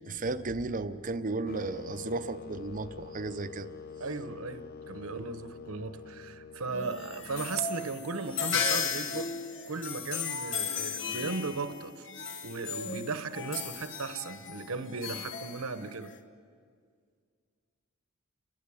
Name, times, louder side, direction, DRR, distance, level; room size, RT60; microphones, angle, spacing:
voice 1, 0.1-3.7 5.2-5.3, right 3 dB, 40° right, 10 dB, 0.8 m, -34 dB
sound 1, 1.5-7.5, left 6 dB, 45° left, 0.5 m, -46 dB
voice 2, 4.0-9.3 9.7-12.1 12.4-16.1, right 4 dB, 75° right, 11 dB, 1.1 m, -36 dB
sound 2, 6.7-16.2, left 6 dB, 60° left, 1.1 m, -36 dB
29.0 x 12.0 x 9.7 m, 2.1 s
head